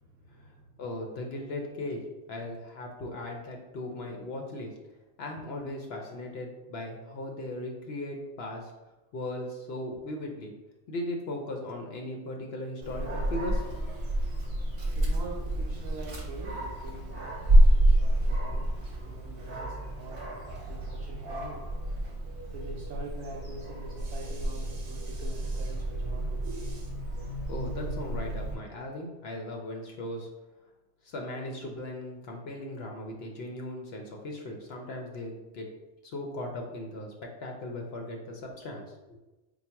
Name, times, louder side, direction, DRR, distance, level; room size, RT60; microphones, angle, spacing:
voice 1, 0.0-0.6 14.9-17.4 17.8-21.6 22.4-26.9, right 2 dB, 75° right, 1 dB, 1.0 m, -44 dB
voice 2, 0.8-2.0 2.3-4.8 5.2-8.7 9.1-10.5 10.9-13.6 27.5-30.3 31.0-35.7 36.1-39.2, left 1 dB, 60° left, 2 dB, 0.7 m, -38 dB
Dog, 12.8-28.5, right 1 dB, 50° right, 0.9 m, -28 dB
3.9 x 2.0 x 4.5 m, 1.1 s
omnidirectional pair, 1.5 m